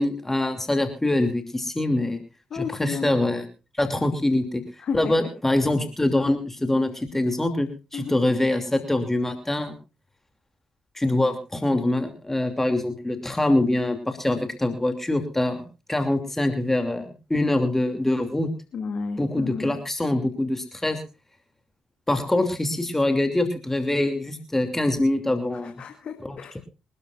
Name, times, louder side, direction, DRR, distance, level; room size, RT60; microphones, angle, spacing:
voice 1, 0.0-2.2 2.5-3.5 3.8-4.6 4.9-9.7 10.9-18.5 19.2-21.0 22.1-25.7 26.2-26.4, left 1 dB, 15° left, 6 dB, 2.8 m, -24 dB
voice 2, 2.5-3.2 4.8-5.1 7.9-8.2 18.7-19.8 25.6-26.6, left 5 dB, 60° left, 4 dB, 2.4 m, -32 dB
25.5 x 12.5 x 2.6 m, 0.31 s
hypercardioid pair, 45°, 2 cm